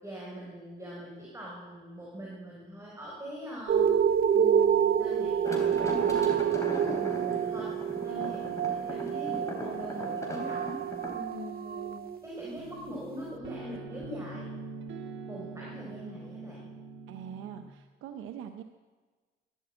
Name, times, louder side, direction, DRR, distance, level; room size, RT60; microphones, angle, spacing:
voice 1, 0.0-3.9 4.3-7.7 8.0-10.8 11.1-14.5 15.3-16.6, equal, 15° right, -4 dB, 4.3 m, -42 dB
sound 1, 3.7-12.6 13.2-13.3, right 8 dB, 50° right, 0.6 m, -28 dB
sound 2, 5.4-11.2, left 1 dB, 15° left, 3.6 m, -39 dB
sound 3, 12.6-17.7, right 4 dB, 70° right, 1.4 m, -43 dB
voice 2, 17.1-18.6, right 9 dB, 90° right, 8 dB, 0.7 m, -43 dB
12.0 x 11.5 x 8.7 m, 1.4 s
cardioid pair, 90°, 20 cm